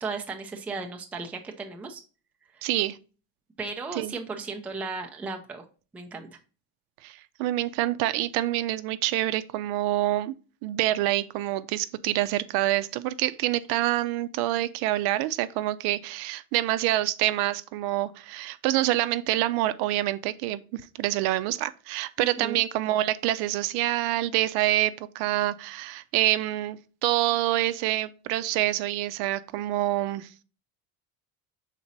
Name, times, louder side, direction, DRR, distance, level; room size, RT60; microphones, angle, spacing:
voice 1, 0.0-2.0 2.5-2.7 3.6-5.6 5.9-6.3 22.2-22.6, right 4 dB, 5° right, 0.4 m, -35 dB
voice 2, 2.6-3.0 4.0-4.1 7.0-10.3 10.6-30.3, right 15 dB, 65° right, 0.6 m, -26 dB
5.9 x 4.1 x 4.0 m
cardioid pair, 170°, 40 cm